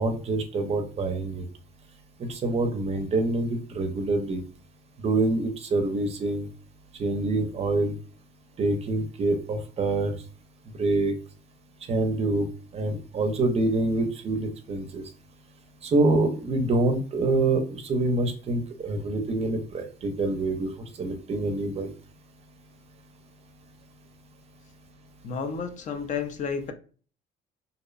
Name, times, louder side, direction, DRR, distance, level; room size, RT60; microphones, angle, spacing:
voice 1, 0.0-1.4 2.2-4.4 5.0-6.5 7.0-7.9 8.6-10.2 10.8-11.1 11.9-12.5 12.7-15.0 15.8-20.7 21.0-21.9, right 2 dB, 40° right, 0.5 m, -26 dB
voice 2, 25.2-26.7, left 6 dB, 45° left, 0.4 m, -31 dB
2.6 x 2.0 x 2.3 m
cardioid pair, 110°, 17 cm